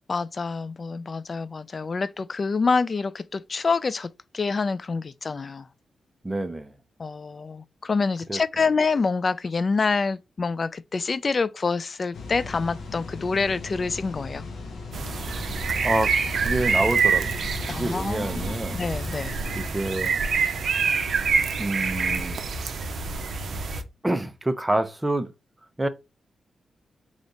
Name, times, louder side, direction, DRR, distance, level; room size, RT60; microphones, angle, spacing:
voice 1, 0.1-5.7 7.0-14.5 17.7-19.3, left 4 dB, 45° left, 0.3 m, -27 dB
voice 2, 6.2-6.7 8.3-8.4 15.8-18.8 19.6-20.2 21.6-22.4 24.0-25.3 25.8-25.9, right 1 dB, 15° right, 0.7 m, -27 dB
sound 1, 12.1-19.7, left 3 dB, 80° left, 0.8 m, -38 dB
sound 2, 14.9-23.8, right 5 dB, 70° right, 0.6 m, -26 dB
3.4 x 2.4 x 3.9 m
cardioid pair, 60°, 0 cm